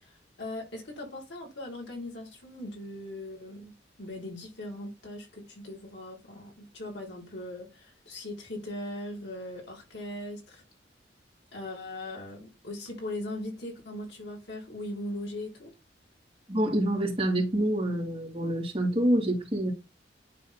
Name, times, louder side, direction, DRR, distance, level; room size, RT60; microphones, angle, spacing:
voice 1, 0.0-10.6 11.5-15.7, left 1 dB, 75° left, 2.9 m, -39 dB
voice 2, 16.5-19.7, right 1 dB, 30° right, 2.5 m, -27 dB
10.0 x 3.4 x 4.0 m
head